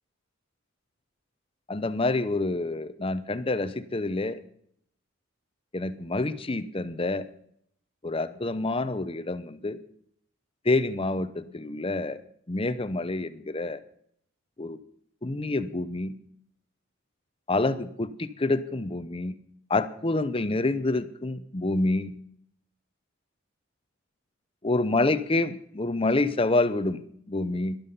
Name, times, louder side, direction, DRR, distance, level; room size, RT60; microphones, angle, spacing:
voice 1, 1.7-4.4 5.7-7.3 8.0-9.8 10.6-12.2 12.5-13.8 14.6-14.8 15.2-16.2 17.5-19.4 19.7-22.1 24.6-27.8, left 2 dB, 25° left, 13 dB, 0.7 m, -27 dB
12.5 x 11.5 x 5.5 m, 0.66 s
head